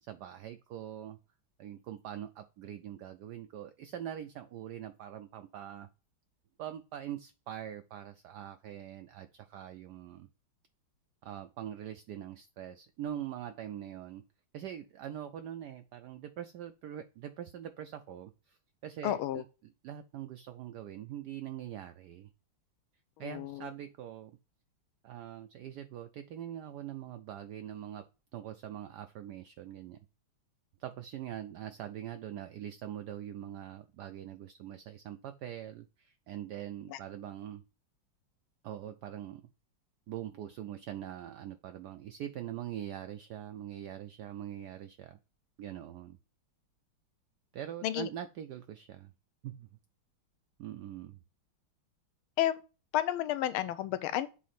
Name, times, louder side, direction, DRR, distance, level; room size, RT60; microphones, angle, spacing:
voice 1, 0.0-1.2 1.6-5.9 6.6-10.3 11.2-14.2 14.5-18.6 18.8-19.4 19.8-22.3 23.2-24.4 25.0-28.1 28.3-30.0 30.8-37.6 38.6-39.4 40.1-45.2 45.6-46.2 47.5-49.1 49.4-49.7 50.6-51.2, right 11 dB, 80° right, 0.9 m, -43 dB
voice 2, 19.0-19.4 23.2-23.7 36.9-37.0 47.8-48.1 52.4-52.6 52.9-54.3, left 13 dB, 85° left, 1.4 m, -31 dB
8.3 x 2.8 x 5.7 m
omnidirectional pair, 2.3 m